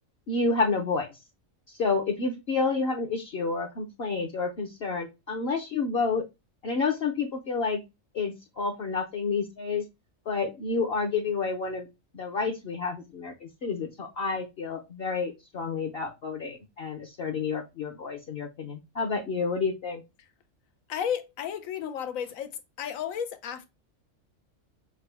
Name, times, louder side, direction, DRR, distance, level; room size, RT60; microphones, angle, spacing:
voice 1, 0.3-1.1 1.7-6.2 6.6-7.8 8.1-9.8 10.3-11.9 12.1-20.0, left 4 dB, 50° left, 0.9 m, -29 dB
voice 2, 20.9-22.5 22.8-23.7, left 8 dB, 80° left, 1.1 m, -32 dB
6.5 x 2.2 x 3.4 m
omnidirectional pair, 1.4 m